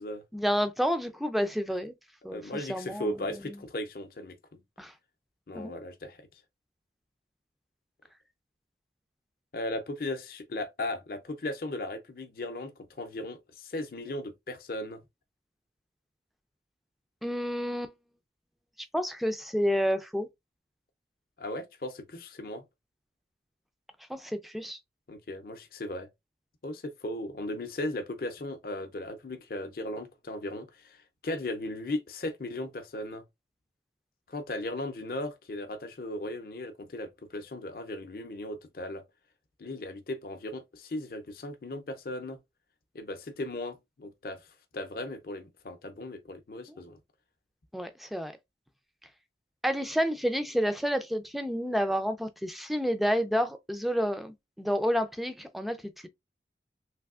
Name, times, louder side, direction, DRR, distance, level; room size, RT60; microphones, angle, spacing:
voice 1, 0.3-1.9 2.2-3.1 3.4-3.5 4.8-4.9 5.5-5.7 17.2-17.9 18.9-20.3 24.1-24.8 47.7-48.3 49.6-55.8, equal, ahead, 0.3 m, -29 dB
voice 2, 2.3-4.6 5.5-6.2 9.5-12.7 13.0-15.0 21.4-22.6 25.1-26.1 26.6-33.2 34.3-39.0 39.6-42.4 42.9-44.4 44.7-47.0, left 1 dB, 55° left, 0.6 m, -37 dB
3.3 x 2.7 x 2.4 m
head